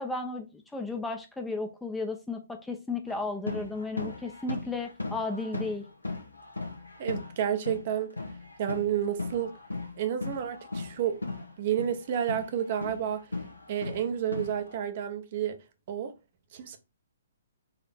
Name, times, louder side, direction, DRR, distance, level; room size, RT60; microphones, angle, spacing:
voice 1, 0.0-5.8, left 3 dB, 5° left, 0.6 m, -34 dB
sound 1, 3.1-7.3 7.6-11.5 11.8-14.8, left 3 dB, 85° left, 0.9 m, -37 dB
voice 2, 7.0-8.1 8.6-9.6 10.0-11.2 11.6-13.3 13.7-15.6 15.9-16.1 16.5-16.8, right 9 dB, 45° right, 0.7 m, -30 dB
4.1 x 2.8 x 4.2 m
figure-of-eight pair, 125°, 0 cm